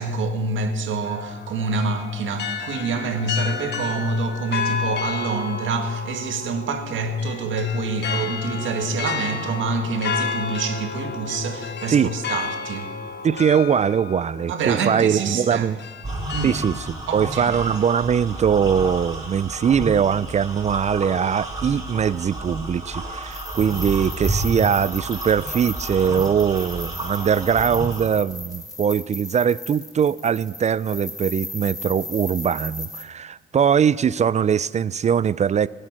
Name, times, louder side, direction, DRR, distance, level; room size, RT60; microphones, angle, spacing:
voice 1, 0.0-13.0 14.5-15.7 16.3-16.6 17.1-17.6, right 3 dB, 75° right, 1.9 m, -26 dB
sound 1, 1.0-18.4, left 6 dB, 60° left, 1.2 m, -32 dB
voice 2, 13.2-15.8 16.4-35.7, right 7 dB, 35° right, 0.4 m, -21 dB
sound 2, 16.0-28.1, right 1 dB, 20° right, 4.8 m, -31 dB
sound 3, 23.2-33.0, left 2 dB, 15° left, 1.5 m, -37 dB
23.0 x 7.8 x 6.2 m
cardioid pair, 90°, 20 cm